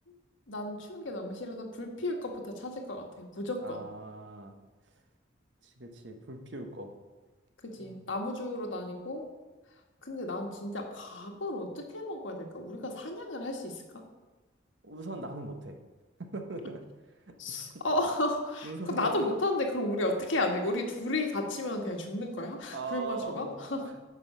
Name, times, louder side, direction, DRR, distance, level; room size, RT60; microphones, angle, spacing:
voice 1, 0.5-3.8 7.6-9.3 10.0-13.8 17.4-23.9, left 1 dB, 80° left, 2 dB, 1.5 m, -33 dB
voice 2, 3.6-4.5 5.6-6.9 7.8-8.0 14.8-15.8 16.2-16.8 17.3-17.7 18.6-19.1 22.7-23.9, right 3 dB, 70° right, 5 dB, 1.1 m, -40 dB
9.5 x 5.5 x 6.8 m, 1.2 s
head